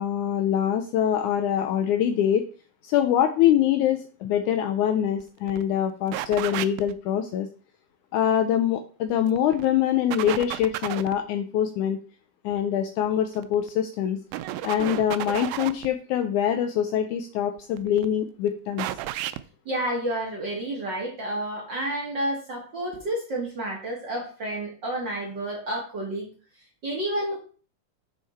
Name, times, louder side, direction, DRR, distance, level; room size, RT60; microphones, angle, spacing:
voice 1, 0.0-2.5 2.8-7.5 8.1-12.0 12.4-14.2 14.6-18.9, left 10 dB, 80° left, 7 dB, 1.8 m, -24 dB
sound 1, 5.2-5.3 5.5-5.6 6.1-6.9 9.1-9.7 10.1-11.2 13.4-13.7 14.3-15.9 17.6-18.1 18.8-19.4, right 15 dB, 85° right, 2.3 m, -32 dB
voice 2, 19.6-26.3 26.8-27.4, right 1 dB, 40° right, -1 dB, 1.7 m, -30 dB
6.6 x 6.2 x 4.2 m, 0.39 s
omnidirectional pair, 4.0 m